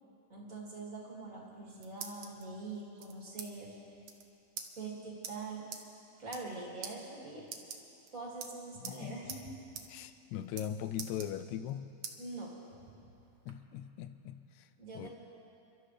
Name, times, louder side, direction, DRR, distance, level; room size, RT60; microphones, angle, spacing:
voice 1, 0.3-3.8 4.8-5.7 6.2-7.5 8.1-9.6 12.2-12.5 14.8-15.1, right 3 dB, 30° right, -3 dB, 2.5 m, -44 dB
sound 1, 1.4-2.4 3.0-3.5 3.8-3.9 4.0-4.2 4.6-4.7 5.2-5.3 5.7-5.8 6.2-6.5 6.8-6.9 7.4-8.1 8.4-9.0 9.3-9.4 9.7-9.9 10.1-10.7 11.0-11.7 12.0-12.2 12.7-13.5, right 7 dB, 65° right, 1.4 m, -44 dB
voice 2, 8.8-9.3 9.9-11.8 13.5-14.7 15.0-15.1, left 10 dB, 80° left, 11 dB, 1.8 m, -40 dB
28.5 x 12.5 x 3.3 m, 2.6 s
omnidirectional pair, 3.7 m